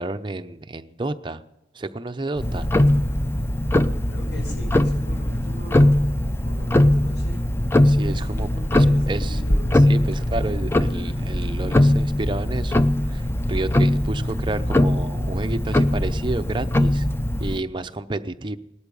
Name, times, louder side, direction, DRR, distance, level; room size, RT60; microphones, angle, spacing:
voice 1, 0.0-1.4 1.7-2.7 7.8-8.5 8.7-9.4 9.9-17.1 17.4-18.6, right 2 dB, 25° right, 9 dB, 0.6 m, -30 dB
Tick-tock, 2.4-17.6, left 1 dB, 15° left, 0.5 m, -21 dB
voice 2, 4.1-6.1 6.3-7.4 8.1-10.6, equal, 70° left, 2 dB, 5.4 m, -41 dB
18.5 x 13.0 x 5.4 m, 0.96 s
head